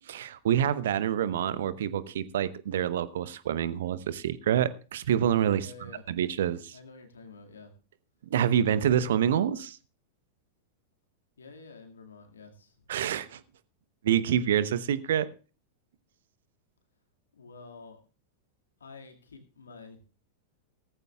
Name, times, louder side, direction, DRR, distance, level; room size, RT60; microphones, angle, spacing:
voice 1, 0.1-5.7 6.1-6.8 8.3-9.8 12.9-13.4 14.0-15.3, right 9 dB, 60° right, 16 dB, 0.8 m, -27 dB
voice 2, 5.5-6.2 6.7-7.7 11.4-12.9 17.3-18.0 18.8-20.0, left 4 dB, 70° left, 4 dB, 2.1 m, -49 dB
17.5 x 14.5 x 2.4 m, 0.34 s
figure-of-eight pair, 90°, 0 cm